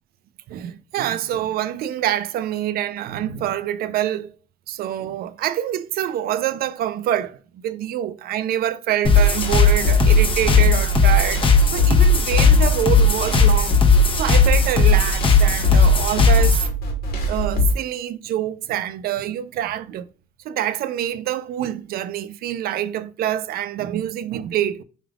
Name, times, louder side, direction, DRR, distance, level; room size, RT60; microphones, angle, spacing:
voice 1, 0.5-4.3 4.7-13.8 14.1-16.6 17.3-20.1 20.4-24.8, right 11 dB, 65° right, 0.5 m, -26 dB
sound 1, 9.0-16.6, left 4 dB, 30° left, 1.0 m, -17 dB
sound 2, 9.1-17.7, left 1 dB, 65° left, 1.6 m, -22 dB
4.9 x 3.3 x 2.3 m
cardioid pair, 110°, 17 cm